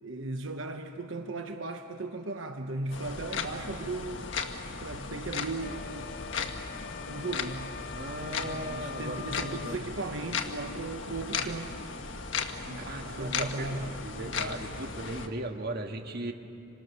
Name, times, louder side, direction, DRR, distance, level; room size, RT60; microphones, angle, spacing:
voice 1, 0.0-4.3 4.8-6.1 7.1-7.7 8.4-11.7 12.6-12.9 13.2-14.0, right 2 dB, 85° right, 5 dB, 1.1 m, -37 dB
sound 1, 2.9-15.3, left 5 dB, 75° left, 1.5 m, -36 dB
sound 2, 5.6-9.8, left 8 dB, 50° left, 0.5 m, -44 dB
voice 2, 7.9-9.8 12.8-16.3, right 1 dB, 55° right, 4 dB, 1.9 m, -37 dB
28.0 x 24.5 x 6.8 m, 2.9 s
head